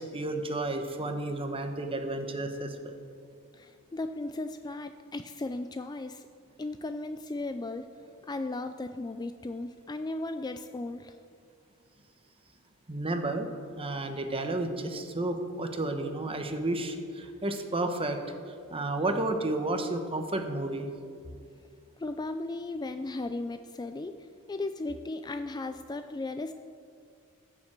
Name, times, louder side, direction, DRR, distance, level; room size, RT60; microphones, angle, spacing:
voice 1, 0.0-2.9 12.9-13.5 13.8-18.2 18.7-20.9, right 2 dB, 25° right, 6 dB, 1.1 m, -31 dB
voice 2, 3.5-6.3 6.6-7.9 8.2-11.2 22.0-24.2 24.5-26.5, left 2 dB, 20° left, 9 dB, 0.4 m, -36 dB
15.0 x 7.2 x 7.4 m, 2.3 s
head